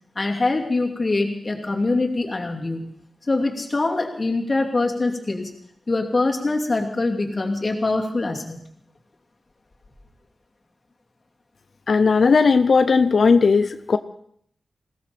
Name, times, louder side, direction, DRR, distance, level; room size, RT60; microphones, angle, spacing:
voice 1, 0.1-3.0 3.3-5.5 5.9-8.7, left 2 dB, 40° left, 1 dB, 2.8 m, -24 dB
voice 2, 11.9-14.0, left 4 dB, 65° left, 11 dB, 0.7 m, -16 dB
20.5 x 16.5 x 4.3 m, 0.67 s
wide cardioid pair, 80°, 0 cm